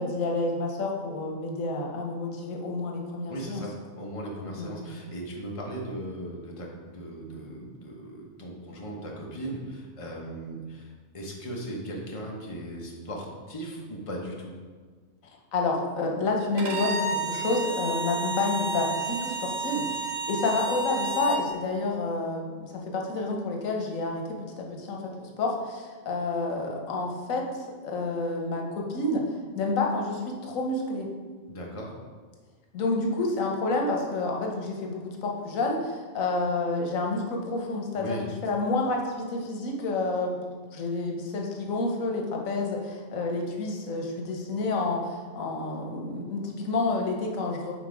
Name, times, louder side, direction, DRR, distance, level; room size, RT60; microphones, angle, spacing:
voice 1, 0.0-3.6 4.6-4.8 15.5-24.2 24.6-29.2 29.5-31.1 32.7-38.2 38.4-40.3 40.7-47.7, left 3 dB, 90° left, 1 dB, 1.3 m, -29 dB
voice 2, 3.3-14.5 31.5-31.9 37.9-38.2, right 1 dB, 30° left, -2 dB, 0.9 m, -38 dB
Bowed string instrument, 16.6-21.5, right 3 dB, 75° right, 1.1 m, -31 dB
6.0 x 3.8 x 4.7 m, 1.5 s
omnidirectional pair, 1.4 m